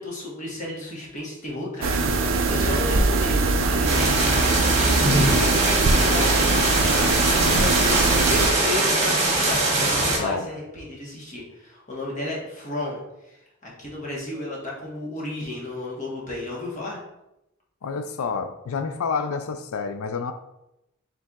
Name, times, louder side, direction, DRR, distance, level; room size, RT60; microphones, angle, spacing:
voice 1, 0.0-17.0, left 2 dB, 35° left, -4 dB, 1.3 m, -33 dB
sound 1, 1.8-8.5, right 3 dB, 65° right, 0.4 m, -22 dB
sound 2, 3.8-10.2, right 2 dB, 35° right, 1.2 m, -22 dB
voice 2, 17.8-20.3, left 5 dB, 85° left, 9 dB, 0.4 m, -29 dB
4.4 x 4.0 x 2.4 m, 0.88 s
head